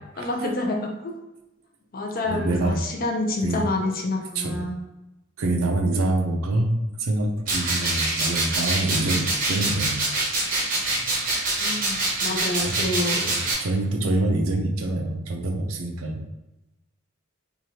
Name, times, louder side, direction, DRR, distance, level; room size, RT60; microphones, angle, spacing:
voice 1, 0.2-1.1 1.9-4.8 11.6-13.3, left 2 dB, 40° left, 1 dB, 0.5 m, -28 dB
voice 2, 2.3-2.8 3.4-3.7 4.4-4.6 5.4-9.9 12.6-12.9 13.2-13.3 13.6-16.2, right 2 dB, 80° right, 4 dB, 0.5 m, -25 dB
sound 1, 7.5-13.5, right 2 dB, 40° right, 0.6 m, -25 dB
3.1 x 2.4 x 2.8 m, 0.98 s
head